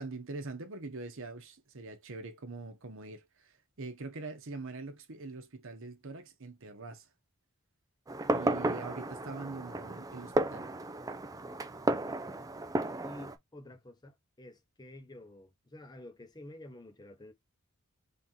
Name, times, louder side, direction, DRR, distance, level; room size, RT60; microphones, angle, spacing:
voice 1, 0.0-7.1 8.3-10.7, right 3 dB, 60° right, 1.0 m, -43 dB
Fireworks, 8.1-13.3, right 2 dB, 15° right, 0.4 m, -33 dB
voice 2, 13.0-17.3, left 1 dB, 20° left, 0.8 m, -50 dB
3.7 x 2.9 x 3.7 m
head